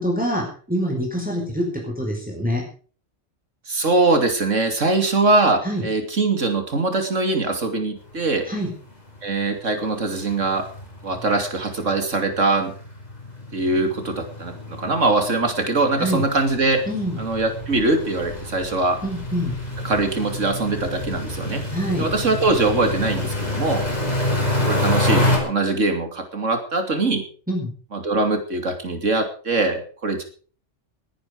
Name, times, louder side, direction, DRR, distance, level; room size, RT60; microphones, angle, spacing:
voice 1, 0.0-2.6 5.6-5.8 8.4-8.7 16.0-16.2 16.9-17.2 19.0-19.6 21.7-22.1 27.5-27.7, equal, 5° right, -1 dB, 4.9 m, -25 dB
voice 2, 3.7-8.5 9.2-10.7 11.0-12.7 13.5-16.8 17.2-19.0 19.8-21.6 22.0-23.8 24.6-27.2 27.9-30.2, right 3 dB, 90° right, 6 dB, 3.2 m, -22 dB
sound 1, 8.3-8.4 8.6-8.8 9.2-9.3 9.5-25.4, left 1 dB, 35° left, 4.9 m, -28 dB
20.5 x 10.0 x 5.1 m, 0.41 s
omnidirectional pair, 1.3 m